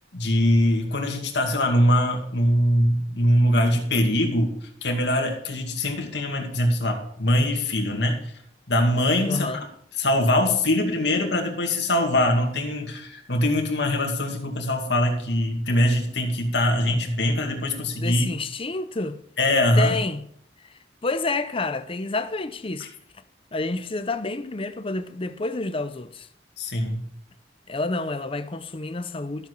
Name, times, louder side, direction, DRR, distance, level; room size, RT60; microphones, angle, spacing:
voice 1, 0.1-4.5 4.8-8.2 8.7-9.5 10.0-18.3 19.4-19.9 26.6-27.0, left 1 dB, 70° left, 2.3 m, -22 dB
voice 2, 9.3-9.7 16.8-16.9 18.0-19.2 19.8-20.3 21.0-22.9 23.5-26.3 27.7-29.5, left 3 dB, 30° left, 0.7 m, -29 dB
13.5 x 7.6 x 4.6 m
head